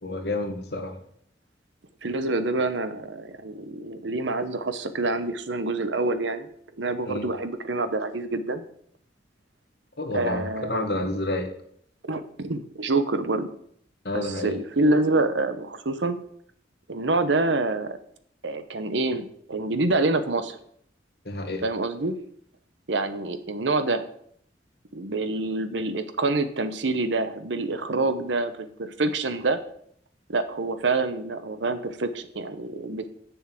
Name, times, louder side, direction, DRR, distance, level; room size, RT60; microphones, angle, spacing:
voice 1, 0.0-1.0 7.1-7.3 10.0-11.5 14.0-14.6 21.2-21.6, left 2 dB, 60° left, 4 dB, 1.7 m, -29 dB
voice 2, 2.0-6.5 6.8-8.6 10.1-10.9 12.1-13.5 14.1-16.2 16.9-18.0 18.4-20.6 21.6-22.2 22.9-24.0 24.9-29.6 30.3-33.1, right 2 dB, 80° right, 11 dB, 1.0 m, -26 dB
7.3 x 7.0 x 7.5 m, 0.66 s
head